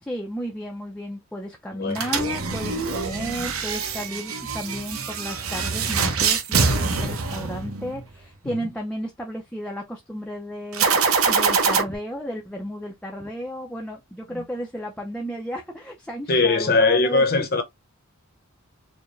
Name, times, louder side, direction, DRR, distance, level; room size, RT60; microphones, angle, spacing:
voice 1, 0.0-17.2, equal, 5° left, 0.5 m, -33 dB
sound 1, 1.9-8.1 10.7-11.8, right 5 dB, 70° right, 0.8 m, -24 dB
voice 2, 16.3-17.6, left 3 dB, 45° left, 0.8 m, -20 dB
4.4 x 2.1 x 3.1 m
head